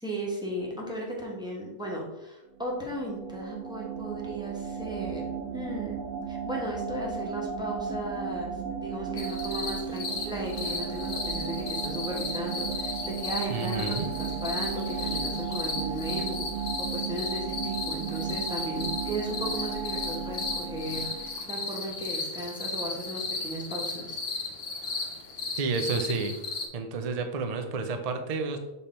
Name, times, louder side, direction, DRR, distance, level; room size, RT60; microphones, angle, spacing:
voice 1, 0.0-5.2 5.5-6.0 6.3-24.2, right 1 dB, 5° right, -3 dB, 1.3 m, -36 dB
sound 1, 2.6-21.5, right 7 dB, 75° right, 1.1 m, -35 dB
sound 2, 9.2-26.7, left 3 dB, 50° left, 1.1 m, -35 dB
voice 2, 13.5-14.1 25.6-26.3 26.7-28.6, right 4 dB, 40° right, 6 dB, 0.5 m, -30 dB
6.9 x 3.5 x 4.4 m, 1.0 s
omnidirectional pair, 1.5 m